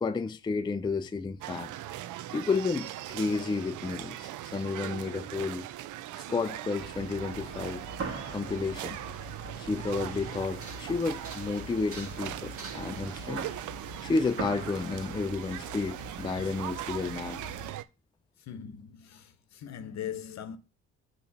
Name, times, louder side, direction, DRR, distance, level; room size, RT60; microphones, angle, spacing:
voice 1, 0.0-1.7 2.3-5.7 6.1-7.9 8.3-9.0 9.6-13.5 14.0-17.4, left 4 dB, 15° left, 0.4 m, -31 dB
sound 1, 1.4-17.8, right 13 dB, 80° right, 0.5 m, -40 dB
sound 2, 6.8-17.7, right 3 dB, 50° right, 1.8 m, -42 dB
voice 2, 18.4-20.6, left 9 dB, 60° left, 0.9 m, -40 dB
7.0 x 3.1 x 5.1 m
cardioid pair, 90°, 30 cm